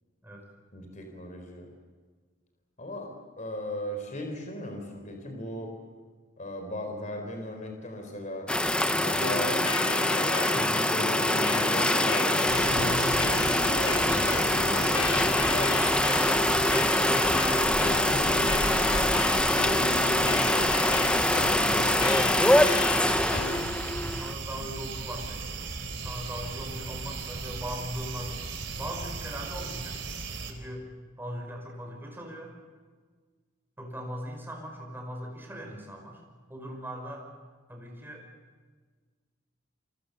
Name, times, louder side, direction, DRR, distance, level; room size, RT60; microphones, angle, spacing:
voice 1, 0.7-1.7 2.8-5.7 6.4-8.5 8.9-9.6 10.1-13.0 13.7-15.9, left 1 dB, 35° left, 3 dB, 4.3 m, -37 dB
sound 1, 8.5-24.3, left 1 dB, 5° left, 0.9 m, -24 dB
sound 2, 9.2-24.2, left 6 dB, 90° left, 0.7 m, -35 dB
sound 3, 12.5-30.5, right 3 dB, 60° right, 3.6 m, -36 dB
voice 2, 16.5-21.0 21.6-23.7 24.0-25.5 25.9-28.4 28.7-30.0 30.5-30.9 31.2-32.5 33.8-36.2 36.5-37.3 37.7-38.2, equal, 10° right, 1 dB, 5.5 m, -40 dB
29.0 x 24.5 x 6.9 m, 1.5 s
head